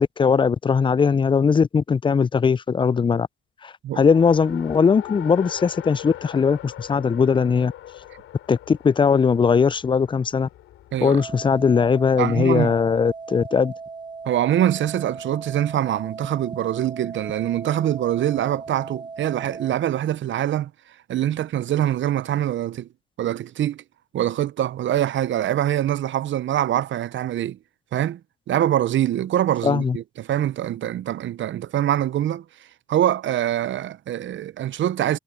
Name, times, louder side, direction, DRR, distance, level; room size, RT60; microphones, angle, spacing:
voice 1, 0.0-3.3 3.6-7.7 8.5-10.5 11.0-13.7 29.6-30.0, left 6 dB, 25° left, 0.3 m, -20 dB
Race car auto racing, 3.9-13.0, left 13 dB, 85° left, 2.7 m, -42 dB
voice 2, 10.9-11.2 12.2-12.7 14.3-20.7 21.1-22.9 23.2-23.8 24.1-27.6 27.9-28.2 28.5-32.4 32.9-35.2, right 12 dB, 65° right, 0.6 m, -24 dB
sound 1, 11.2-19.8, right 4 dB, 20° right, 0.8 m, -38 dB
supercardioid pair, 65°, 21 cm